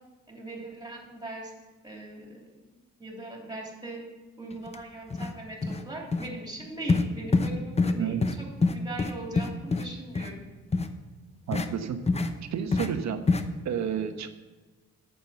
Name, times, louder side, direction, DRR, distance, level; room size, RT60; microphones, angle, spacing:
voice 1, 0.3-1.5 1.8-4.0 4.4-10.5, right 2 dB, 15° right, -1 dB, 3.1 m, -40 dB
sound 1, 4.7-4.8 5.1-5.3 5.6-5.8 6.1-6.3 6.9-7.1 7.3-7.5 7.8-8.0 8.2-8.3 8.6-9.8 10.2-10.3 10.7-10.9 11.5-11.7 12.1-12.3 12.7-12.9 13.3-13.4, left 3 dB, 20° left, 0.8 m, -25 dB
voice 2, 11.5-12.0 12.5-13.2 13.6-14.3, right 8 dB, 65° right, 8 dB, 1.1 m, -30 dB
8.8 x 6.8 x 7.0 m, 1.3 s
cardioid pair, 90°, 30 cm